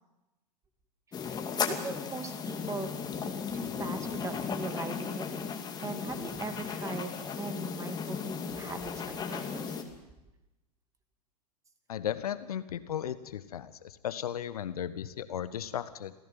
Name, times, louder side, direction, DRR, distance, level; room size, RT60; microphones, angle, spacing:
sound 1, 1.1-9.8, left 6 dB, 20° left, 2.4 m, -36 dB
voice 1, 1.1-5.3 5.8-9.8, right 4 dB, 15° right, 7 dB, 2.5 m, -40 dB
voice 2, 11.9-16.1, left 10 dB, 65° left, 14 dB, 1.5 m, -35 dB
27.0 x 16.0 x 7.7 m, 0.99 s
figure-of-eight pair, 100°, 21 cm